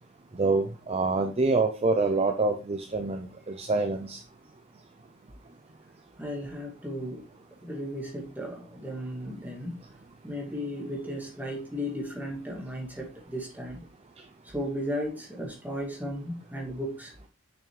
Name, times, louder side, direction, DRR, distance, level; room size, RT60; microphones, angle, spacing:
voice 1, 0.4-4.2, right 3 dB, 30° right, 5 dB, 0.6 m, -26 dB
voice 2, 6.2-7.3 7.6-9.8 10.2-13.8 14.4-17.1, equal, 10° right, -2 dB, 2.4 m, -35 dB
7.1 x 5.9 x 3.3 m, 0.31 s
head